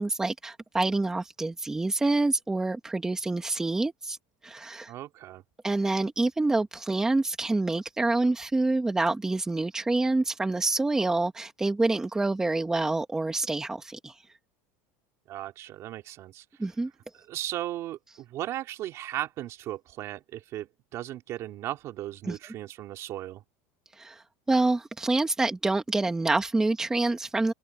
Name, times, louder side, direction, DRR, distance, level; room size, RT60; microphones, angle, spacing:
voice 1, 0.0-4.2 4.4-4.9 5.6-14.2 16.6-16.9 22.3-22.4 24.0-27.5, right 2 dB, 5° right, 1.3 m, -27 dB
voice 2, 4.9-5.4 15.3-16.4 17.3-23.4, right 13 dB, 40° right, 2.7 m, -36 dB
supercardioid pair, 160°, 8 cm